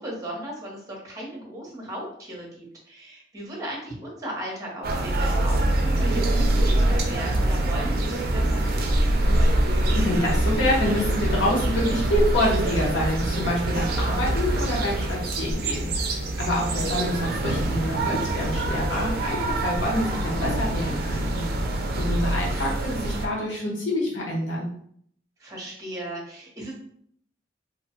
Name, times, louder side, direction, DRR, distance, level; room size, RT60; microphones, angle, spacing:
voice 1, 0.0-10.0 16.8-16.9 25.4-26.7, right 1 dB, 20° right, -2 dB, 0.8 m, -37 dB
sound 1, 4.8-23.3, right 1 dB, 55° right, 0.4 m, -24 dB
voice 2, 9.9-21.5 22.0-24.7, left 1 dB, 85° left, -3 dB, 1.0 m, -27 dB
2.7 x 2.2 x 2.8 m, 0.64 s
head